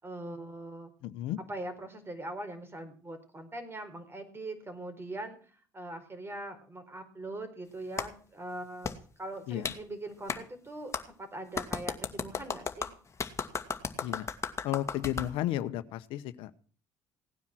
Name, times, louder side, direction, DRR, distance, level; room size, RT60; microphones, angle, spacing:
voice 1, 0.0-0.9 1.5-12.9, right 1 dB, 25° right, 9 dB, 4.6 m, -42 dB
voice 2, 1.0-1.4 9.5-9.7 14.0-14.3 14.6-16.5, left 13 dB, 75° left, 12 dB, 1.0 m, -33 dB
Clapping, 8.0-8.1 8.8-9.0 9.6-9.8 10.3-10.4 10.9-11.0 11.5-15.3, left 5 dB, 30° left, 2.0 m, -34 dB
18.0 x 9.6 x 6.3 m, 0.44 s
supercardioid pair, 65°, 9 cm